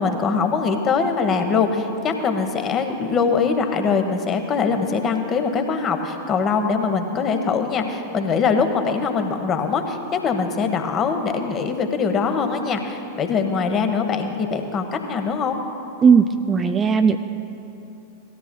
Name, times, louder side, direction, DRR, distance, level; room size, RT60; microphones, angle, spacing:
voice 1, 0.0-15.6, left 5 dB, 30° left, 6 dB, 1.1 m, -22 dB
voice 2, 16.0-17.2, right 6 dB, 20° right, 8 dB, 0.4 m, -16 dB
18.5 x 13.5 x 2.2 m, 2.8 s
figure-of-eight pair, 90°, 0 cm